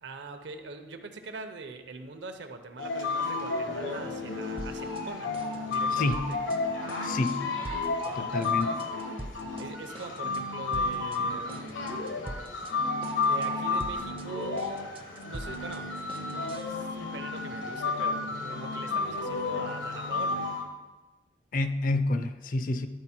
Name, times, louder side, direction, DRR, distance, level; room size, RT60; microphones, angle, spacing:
voice 1, 0.0-5.3 5.7-6.4 8.0-8.4 9.6-11.8 13.2-14.8 15.3-20.4, right 3 dB, 65° right, 7 dB, 0.7 m, -43 dB
sound 1, 2.8-20.6, left 3 dB, 85° left, 1.1 m, -32 dB
sound 2, 4.6-5.1 5.3-6.6 6.9-7.4 7.6-8.1 8.4-9.7 9.9-10.4 10.7-11.2 11.5-12.7 13.0-13.5 13.8-16.8, right 1 dB, 30° right, 0.5 m, -44 dB
voice 2, 5.9-6.2 7.0-7.4 8.2-8.8 21.5-22.9, left 2 dB, 45° left, 10 dB, 0.4 m, -28 dB
11.5 x 4.2 x 4.3 m, 1.2 s
head